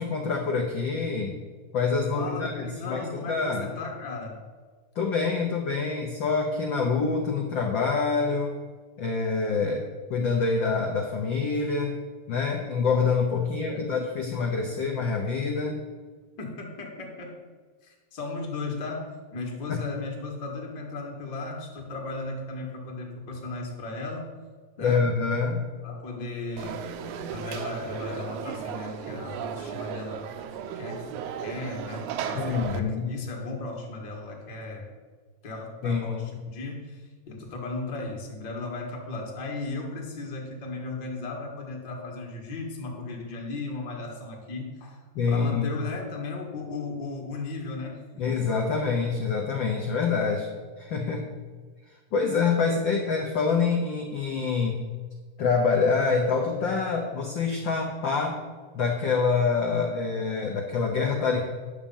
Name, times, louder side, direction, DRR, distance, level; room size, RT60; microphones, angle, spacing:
voice 1, 0.0-1.4 1.7-3.7 4.9-8.5 9.0-12.0 12.3-15.8 19.7-19.8 24.8-25.6 32.3-33.2 35.8-36.2 45.1-45.8 48.2-50.5 50.8-51.3 52.1-54.8 55.4-58.4 58.7-61.4, left 4 dB, 70° left, 0 dB, 1.1 m, -26 dB
voice 2, 2.1-4.4 13.6-13.8 16.4-17.4 17.8-24.3 24.8-25.1 25.8-26.8 27.2-30.3 30.8-34.9 35.4-48.3, left 3 dB, 40° left, 0 dB, 1.9 m, -36 dB
Conversation / Crowd, 26.6-32.8, right 8 dB, 90° right, 2.1 m, -35 dB
10.0 x 6.7 x 5.4 m, 1.5 s
omnidirectional pair, 3.4 m